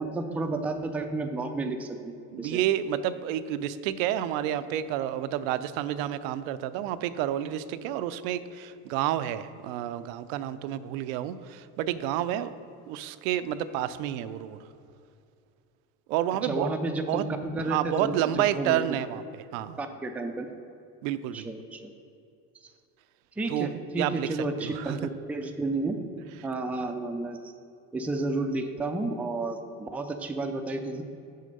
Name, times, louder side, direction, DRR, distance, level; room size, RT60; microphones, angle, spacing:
voice 1, 0.0-2.0 2.4-2.6 16.4-17.2 17.5-18.8 19.8-20.6 21.3-21.9 23.4-26.0 26.4-27.4 27.9-31.0, right 2 dB, 5° right, 5 dB, 0.3 m, -31 dB
voice 2, 2.3-12.5 12.9-14.6 16.1-16.7 17.1-17.3 17.7-19.2 19.5-19.8 21.0-21.5 23.5-23.7 24.0-24.3 24.6-25.0, right 12 dB, 80° right, 13 dB, 0.5 m, -29 dB
6.4 x 5.0 x 5.3 m, 2.6 s
supercardioid pair, 105°, 40 cm